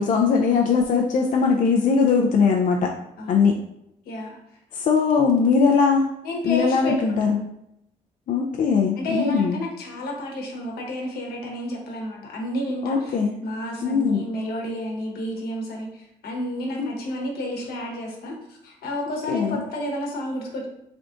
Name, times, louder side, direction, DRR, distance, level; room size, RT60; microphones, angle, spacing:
voice 1, 0.0-2.9 3.3-3.5 4.7-6.1 6.4-7.4 8.3-9.6 12.8-13.3 13.8-14.3 16.8-16.9 19.3-19.6, left 5 dB, 55° left, 1 dB, 0.4 m, -20 dB
voice 2, 4.0-4.4 6.2-7.2 9.0-13.2 13.4-18.4 18.6-20.7, equal, 80° left, 0 dB, 1.0 m, -30 dB
3.4 x 2.4 x 3.7 m, 0.80 s
supercardioid pair, 70°, 16 cm